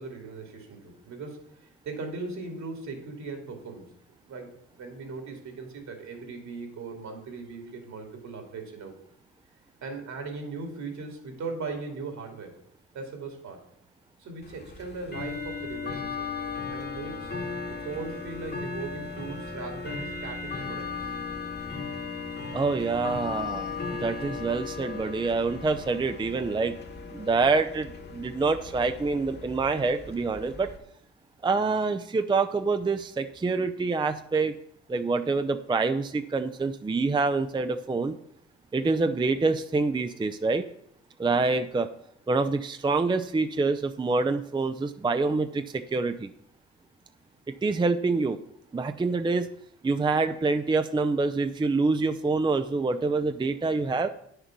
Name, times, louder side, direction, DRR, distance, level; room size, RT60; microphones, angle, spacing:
voice 1, 0.0-3.9 4.2-9.0 9.8-12.6 12.9-13.6 14.2-17.3 17.7-21.1, right 3 dB, 65° right, 3 dB, 2.8 m, -39 dB
Bell / Tick-tock, 14.4-30.8, left 4 dB, 35° left, 1.3 m, -37 dB
voice 2, 22.5-23.7 24.0-26.7 27.1-30.7 31.4-34.6 34.9-38.2 38.7-40.7 41.2-41.9 42.3-46.3 47.5-48.4 48.7-49.5 49.8-54.1, right 3 dB, 15° right, 9 dB, 0.5 m, -26 dB
9.4 x 6.6 x 6.1 m, 0.72 s
cardioid pair, 90°, 30 cm